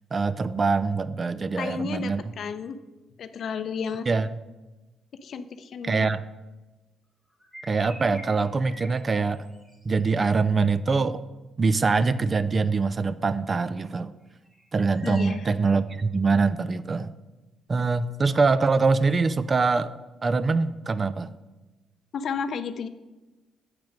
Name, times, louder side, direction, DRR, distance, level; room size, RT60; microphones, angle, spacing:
voice 1, 0.1-2.2 4.1-4.3 5.8-6.2 7.7-9.5 9.8-11.2 11.6-14.1 14.7-17.1 17.7-19.9 20.2-21.3, right 4 dB, 35° right, 14 dB, 0.4 m, -24 dB
voice 2, 1.6-2.8 3.2-4.1 5.1-6.1 15.0-15.5 22.1-22.9, left 6 dB, 60° left, 11 dB, 0.5 m, -32 dB
sound 1, 7.3-10.0 14.2-15.4, equal, 5° right, 1.5 m, -46 dB
7.5 x 5.9 x 5.1 m, 1.1 s
cardioid pair, 90°, 0 cm